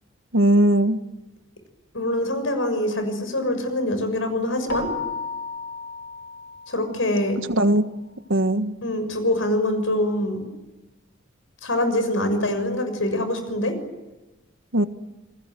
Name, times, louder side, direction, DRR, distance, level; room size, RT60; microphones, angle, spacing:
voice 1, 0.3-1.0 7.5-7.8 8.3-8.8 14.7-14.8, right 1 dB, 75° right, 9 dB, 1.6 m, -18 dB
voice 2, 1.9-4.9 6.7-7.4 8.8-10.5 11.6-13.7, left 1 dB, 75° left, 8 dB, 6.5 m, -24 dB
Keyboard (musical), 4.7-7.1, left 3 dB, 55° left, 4.1 m, -33 dB
29.0 x 21.0 x 9.3 m, 1.0 s
head